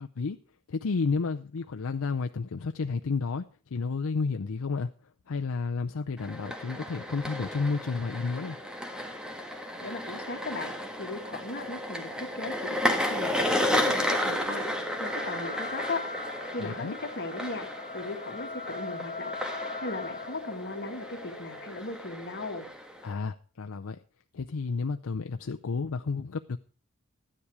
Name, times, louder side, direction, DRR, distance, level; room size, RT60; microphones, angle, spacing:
voice 1, 0.7-3.4 3.7-4.9 5.3-8.6 16.6-16.9 23.0-24.0 24.3-26.6, left 4 dB, 85° left, 6 dB, 0.6 m, -31 dB
sound 1, 6.2-23.1, left 1 dB, 5° right, 1.5 m, -33 dB
voice 2, 9.8-14.6 15.0-16.0 16.5-17.7 17.9-19.4 19.8-22.7, left 2 dB, 55° left, 4 dB, 2.0 m, -37 dB
sound 2, 13.5-22.1, left 3 dB, 35° left, 1.2 m, -41 dB
13.5 x 10.0 x 4.8 m, 0.39 s
head